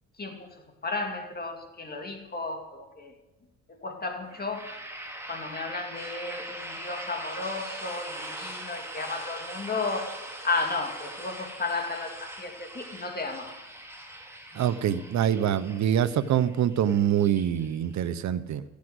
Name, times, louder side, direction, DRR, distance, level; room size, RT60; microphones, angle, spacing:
voice 1, 0.2-3.1 3.7-4.7 5.3-10.1 10.4-13.5 14.5-14.6, left 3 dB, 30° left, 3 dB, 2.4 m, -33 dB
sound 1, 4.3-18.1, right 1 dB, 10° right, 2.8 m, -41 dB
voice 2, 14.5-18.6, right 10 dB, 65° right, 14 dB, 0.9 m, -25 dB
15.0 x 8.5 x 8.0 m, 1.0 s
cardioid pair, 90°, 30 cm